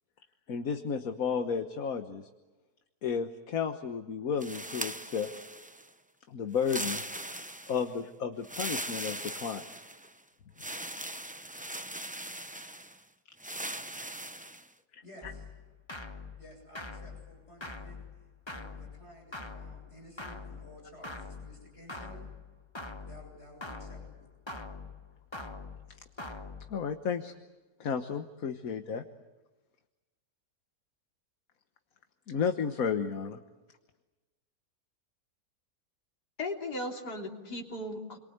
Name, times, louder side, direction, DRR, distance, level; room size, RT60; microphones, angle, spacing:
voice 1, 0.5-2.3 3.0-5.3 6.3-7.0 7.7-9.7 14.9-15.3 26.7-27.3 27.8-29.0 32.3-33.4, left 6 dB, 60° left, 7 dB, 1.6 m, -32 dB
sound 1, 4.4-5.9 6.6-7.9 8.4-10.1 10.6-13.0 13.4-14.7, right 1 dB, 15° right, 0.3 m, -39 dB
voice 2, 15.0-15.5 16.4-18.0 18.5-22.2 23.0-24.3 26.1-26.2, equal, 40° left, 1 dB, 8.1 m, -53 dB
sound 2, 15.2-27.0, left 3 dB, 20° left, 1.4 m, -44 dB
voice 3, 36.4-38.2, left 2 dB, 85° left, 0 dB, 4.1 m, -37 dB
30.0 x 23.5 x 8.1 m, 1.1 s
omnidirectional pair, 1.7 m